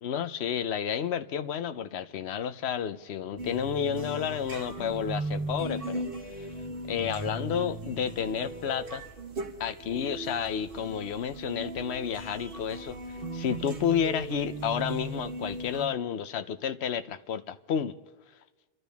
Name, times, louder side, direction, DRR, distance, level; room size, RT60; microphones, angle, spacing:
voice 1, 0.0-6.0 6.4-6.5 6.9-9.0 9.6-18.0, left 8 dB, 70° left, 1.0 m, -31 dB
sound 1, 3.4-15.9, right 2 dB, 55° right, 1.4 m, -38 dB
29.5 x 12.0 x 3.5 m
omnidirectional pair, 1.2 m